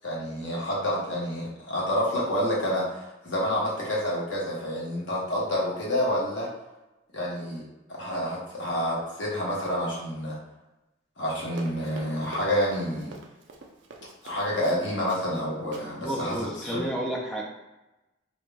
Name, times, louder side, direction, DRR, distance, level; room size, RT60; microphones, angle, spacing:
voice 1, 0.0-6.5 7.1-7.6 7.9-10.4 11.2-13.1 14.2-16.8, equal, 65° left, -5 dB, 0.9 m, -28 dB
Run, 11.5-15.4 15.7-15.9 16.2-16.5, right 3 dB, 65° right, 0.4 m, -45 dB
voice 2, 16.0-17.4, right 1 dB, 5° left, -3 dB, 0.4 m, -31 dB
2.5 x 2.2 x 3.2 m, 1.0 s
head